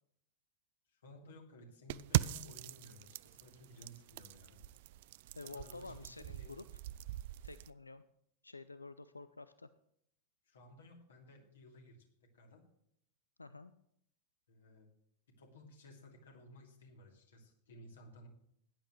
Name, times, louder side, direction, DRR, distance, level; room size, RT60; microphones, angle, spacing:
voice 1, 0.9-4.6 5.5-6.5 10.4-12.0 12.3-12.6 14.5-14.9 15.4-18.3, left 1 dB, 65° left, 1 dB, 2.9 m, -57 dB
sound 1, 1.9-7.7, right 16 dB, 50° right, 0.4 m, -40 dB
voice 2, 5.4-6.6 7.4-8.0 8.4-9.7 13.4-13.7, left 3 dB, 80° left, 14 dB, 0.4 m, -50 dB
17.0 x 10.5 x 3.2 m, 0.71 s
figure-of-eight pair, 90°, 0 cm